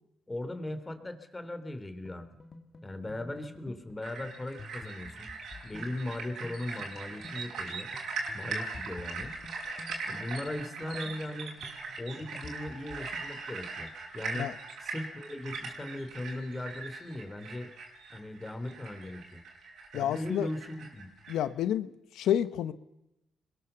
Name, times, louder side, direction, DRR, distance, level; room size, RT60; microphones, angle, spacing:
voice 1, 0.3-2.3 2.8-5.3 5.6-7.9 8.3-9.4 10.1-11.5 12.0-14.5 14.8-17.7 18.1-19.4 19.9-21.1, left 1 dB, 15° left, 3.4 m, -38 dB
sound 1, 2.0-13.3, left 3 dB, 35° left, 2.4 m, -50 dB
sound 2, 4.0-21.4, right 4 dB, 70° right, 6.9 m, -40 dB
voice 2, 19.9-20.5 21.3-22.7, left 10 dB, 85° left, 1.2 m, -29 dB
30.0 x 22.0 x 7.1 m
cardioid pair, 90°, 0 cm